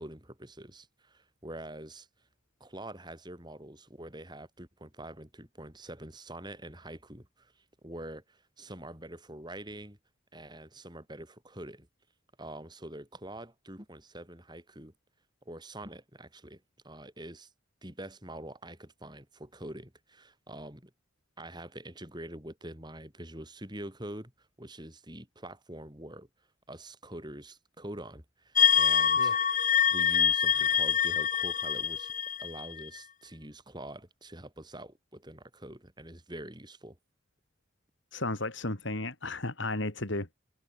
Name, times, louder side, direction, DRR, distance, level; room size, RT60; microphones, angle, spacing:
voice 1, 0.0-2.1 2.6-10.0 10.3-11.9 12.4-14.9 15.5-17.5 17.8-20.9 21.4-26.3 26.7-29.4 29.8-32.1 32.4-37.0, right 1 dB, 20° right, 5.2 m, -45 dB
sound 1, 28.6-33.0, left 8 dB, 35° left, 2.0 m, -25 dB
voice 2, 38.1-40.3, left 2 dB, 60° left, 3.4 m, -34 dB
head